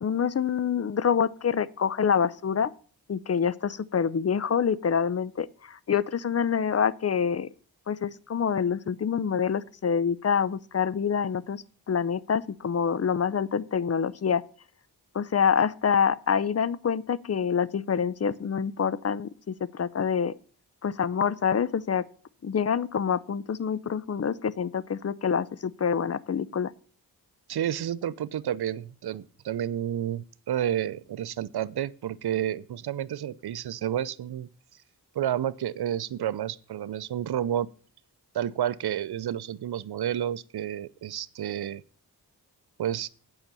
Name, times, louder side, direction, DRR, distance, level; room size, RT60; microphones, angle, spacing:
voice 1, 0.0-2.7 3.1-7.5 7.9-14.4 15.1-20.3 20.8-22.0 22.4-26.7, left 7 dB, 40° left, 0.6 m, -26 dB
voice 2, 27.5-34.5 35.1-37.7 38.3-41.8 42.8-43.1, right 10 dB, 70° right, 0.6 m, -30 dB
8.8 x 5.8 x 6.7 m
cardioid pair, 40°, 40 cm